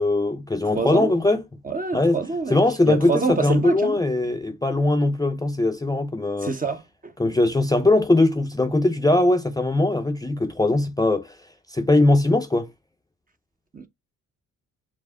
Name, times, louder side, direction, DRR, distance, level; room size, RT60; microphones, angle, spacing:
voice 1, 0.0-1.4 1.9-2.2 2.5-6.5 7.2-11.4 11.7-12.7, left 2 dB, 10° left, 0.7 m, -20 dB
voice 2, 0.7-1.1 1.6-2.6 2.9-4.0 6.4-7.1 13.7-13.9, right 4 dB, 25° right, 0.8 m, -26 dB
4.8 x 2.1 x 3.5 m
supercardioid pair, 55°, 33 cm